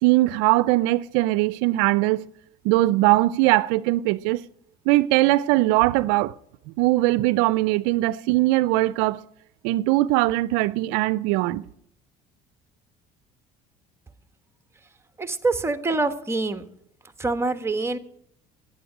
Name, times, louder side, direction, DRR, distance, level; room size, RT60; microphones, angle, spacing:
voice 1, 0.0-2.2 2.6-4.4 4.9-6.3 6.8-9.2 9.6-11.6, right 18 dB, 85° right, 0.4 m, -20 dB
voice 2, 15.2-16.6 17.2-18.0, right 3 dB, 15° right, 1.2 m, -25 dB
11.0 x 9.2 x 9.7 m
supercardioid pair, 85°, 17 cm